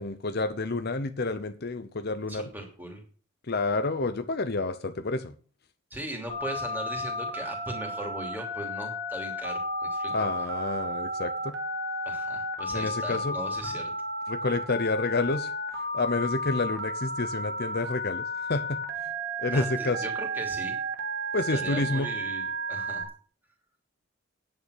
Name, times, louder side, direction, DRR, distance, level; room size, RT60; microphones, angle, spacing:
voice 1, 0.0-2.4 3.5-5.3 10.1-11.5 12.7-13.4 14.3-15.5 15.9-18.8 19.4-20.0 21.3-22.1, left 3 dB, 45° left, 10 dB, 0.8 m, -29 dB
voice 2, 2.3-3.0 5.9-10.1 10.4-10.5 12.0-13.9 19.5-20.8 21.5-23.0, right 1 dB, 10° right, 2 dB, 3.0 m, -39 dB
Telephone, 6.3-23.0, equal, 55° right, 2.8 m, -33 dB
10.0 x 9.1 x 6.5 m, 0.41 s
head